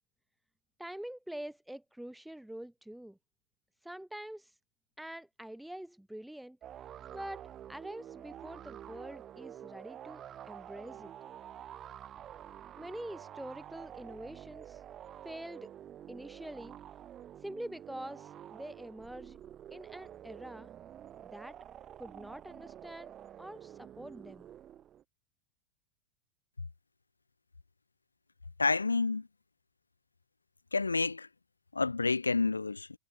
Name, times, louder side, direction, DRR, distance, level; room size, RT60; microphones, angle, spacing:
voice 1, 0.8-3.2 3.8-4.6 5.0-6.6 7.1-7.4 7.7-11.1 12.8-14.8 15.2-15.7 16.1-16.8 17.4-19.4 19.7-20.7 21.2-21.6 22.0-23.1 23.4-24.5, right 1 dB, ahead, 0.7 m, -45 dB
sound 1, 6.6-25.0, right 10 dB, 30° right, 3.0 m, -49 dB
voice 2, 28.6-29.3 30.7-31.3 31.7-32.9, left 3 dB, 80° left, 0.4 m, -29 dB
figure-of-eight pair, 90°, 0 cm